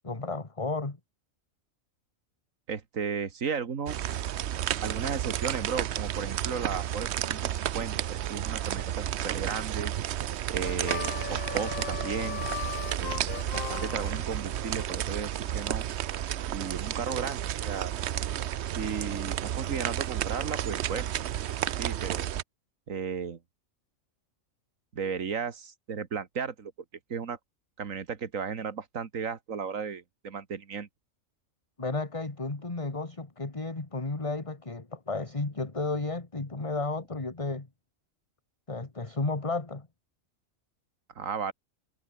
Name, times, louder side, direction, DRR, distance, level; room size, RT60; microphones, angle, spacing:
voice 1, 0.0-1.0 31.8-37.7 38.7-39.9, left 3 dB, 25° left, 1.8 m, -33 dB
voice 2, 2.7-4.2 4.8-9.9 10.5-12.4 13.0-15.8 16.5-17.9 18.7-21.1 21.8-22.3 22.9-23.4 24.9-26.7 27.1-27.4 27.8-30.9 41.2-41.5, right 6 dB, 85° right, 2.0 m, -35 dB
sound 1, 3.9-22.4, right 11 dB, 60° right, 0.9 m, -32 dB
Harmonica, 10.6-14.9, left 13 dB, 85° left, 1.1 m, -38 dB
omnidirectional pair, 1.4 m